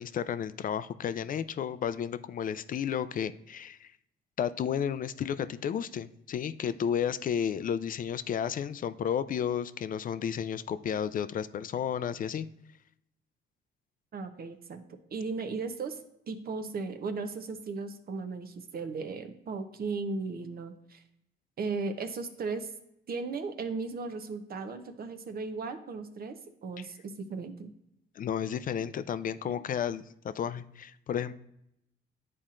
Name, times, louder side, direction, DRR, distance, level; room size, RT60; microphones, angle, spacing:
voice 1, 0.0-3.9 4.4-12.5 28.2-31.3, left 8 dB, 45° left, 14 dB, 0.4 m, -32 dB
voice 2, 14.1-14.8 15.1-16.0 16.3-21.0 21.6-22.7 23.1-27.7 29.4-29.6, right 4 dB, 50° right, 9 dB, 0.8 m, -36 dB
10.5 x 4.2 x 2.5 m, 0.80 s
cardioid pair, 90°, 20 cm